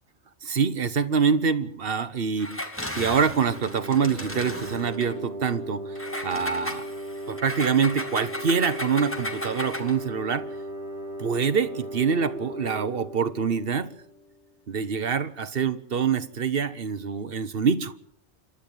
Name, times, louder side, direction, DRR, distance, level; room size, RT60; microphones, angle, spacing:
voice 1, 0.4-2.6 3.0-5.9 6.2-6.9 7.3-10.5 11.2-13.9 14.7-17.9, right 6 dB, 50° right, 1.2 m, -25 dB
Engine, 2.4-5.1 5.9-10.0, left 1 dB, 10° left, 2.4 m, -35 dB
sound 1, 3.1-14.5, right 1 dB, 25° right, 5.2 m, -37 dB
27.5 x 12.0 x 9.1 m
omnidirectional pair, 1.3 m